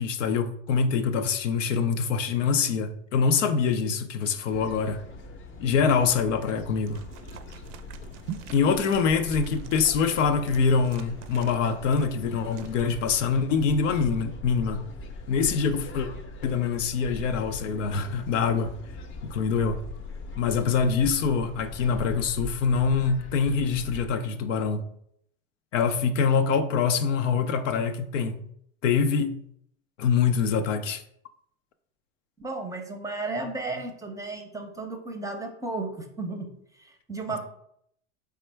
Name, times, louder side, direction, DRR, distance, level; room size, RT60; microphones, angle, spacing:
voice 1, 0.0-5.0 5.6-7.0 8.5-14.8 15.3-16.1 16.4-18.7 19.2-19.8 20.4-24.8 25.7-28.4 28.8-29.4 30.0-31.0, left 5 dB, 90° left, 0.6 m, -24 dB
sound 1, 4.5-24.1, left 2 dB, 35° left, 0.7 m, -41 dB
sound 2, 6.8-13.2, right 9 dB, 80° right, 0.5 m, -45 dB
voice 2, 32.4-36.5 36.8-37.4, right 3 dB, 10° right, 0.6 m, -34 dB
4.3 x 3.4 x 3.3 m
hypercardioid pair, 105°, 36 cm